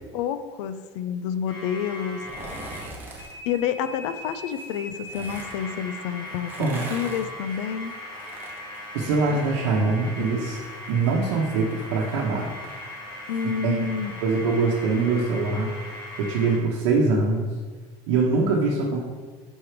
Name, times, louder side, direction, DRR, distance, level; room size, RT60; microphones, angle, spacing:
voice 1, 0.1-2.2 3.5-7.9 13.3-14.2, left 8 dB, 75° left, 11 dB, 0.5 m, -29 dB
sound 1, 1.5-2.9 3.2-16.6, left 1 dB, 30° left, 1.3 m, -39 dB
sound 2, 2.1-3.3 4.5-5.5 6.3-9.8 10.1-13.5 13.8-13.9, right 2 dB, 15° right, 0.9 m, -42 dB
voice 2, 8.9-10.6 10.9-12.5 13.6-13.7 14.2-15.7 16.2-17.5 18.1-19.0, right 3 dB, 85° right, -3 dB, 1.0 m, -23 dB
5.4 x 4.5 x 5.0 m, 1.5 s
cardioid pair, 170°, 15 cm